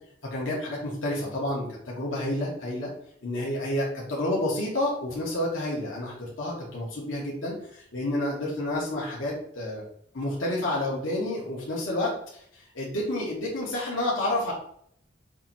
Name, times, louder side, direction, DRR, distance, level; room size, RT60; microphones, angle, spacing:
voice 1, 0.2-2.9 3.2-9.8 10.1-14.5, left 1 dB, 80° left, -5 dB, 1.9 m, -30 dB
6.6 x 3.2 x 4.5 m, 0.69 s
head